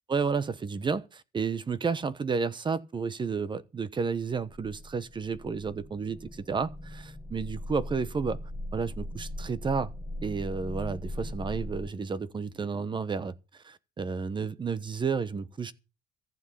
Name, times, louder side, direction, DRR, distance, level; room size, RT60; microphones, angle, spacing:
voice 1, 0.1-8.4 8.7-9.9 10.2-15.7, right 5 dB, 30° right, 1.0 m, -31 dB
sound 1, 4.5-11.9, left 1 dB, 15° left, 1.2 m, -39 dB
14.5 x 7.9 x 6.9 m
cardioid pair, 110°, 17 cm